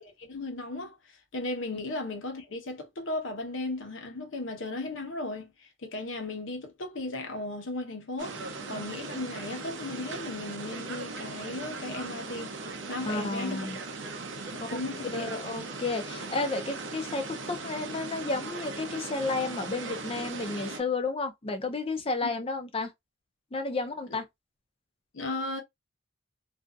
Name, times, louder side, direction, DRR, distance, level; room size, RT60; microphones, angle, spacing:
voice 1, 0.0-8.4 8.7-12.5 12.9-13.7 14.5-15.3 22.2-22.3 25.1-25.6, left 2 dB, 70° left, 0.9 m, -36 dB
sound 1, 8.2-20.8, right 3 dB, 65° right, 0.5 m, -39 dB
voice 2, 13.0-13.8 14.6-14.8 15.1-22.9 23.5-24.3, left 3 dB, 30° left, 0.5 m, -32 dB
2.6 x 2.4 x 2.3 m
head